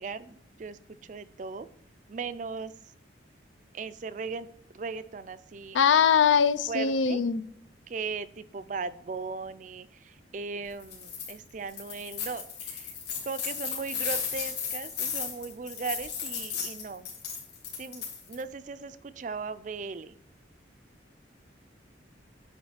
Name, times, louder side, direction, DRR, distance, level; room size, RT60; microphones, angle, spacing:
voice 1, 0.0-1.7 2.1-2.7 3.7-4.5 4.7-5.8 6.7-7.2 7.9-12.9 13.2-17.1 17.8-20.2, right 4 dB, 40° right, 14 dB, 0.4 m, -38 dB
voice 2, 5.7-7.4, left 7 dB, 85° left, 15 dB, 0.4 m, -22 dB
sound 1, 10.8-11.3 11.7-18.4, left 7 dB, 65° left, 2.7 m, -35 dB
9.4 x 3.2 x 5.7 m, 0.72 s
head